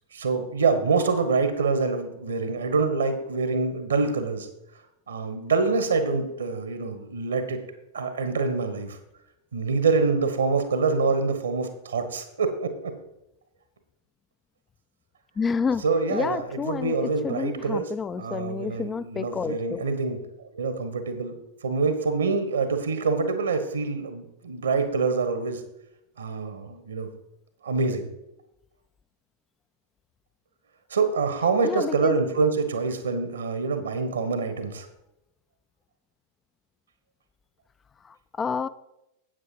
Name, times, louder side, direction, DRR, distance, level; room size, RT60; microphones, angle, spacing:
voice 1, 0.1-4.5 5.1-7.6 7.9-9.0 9.5-12.9 15.8-17.9 18.2-21.4 21.6-25.6 26.2-27.1 27.6-28.1 30.9-34.9, right 4 dB, 70° right, 9 dB, 1.3 m, -26 dB
voice 2, 15.4-15.8 16.1-19.9 31.6-32.2 38.0-38.7, left 5 dB, 20° left, 14 dB, 0.3 m, -29 dB
8.9 x 8.2 x 4.6 m, 0.86 s
figure-of-eight pair, 90°, 0 cm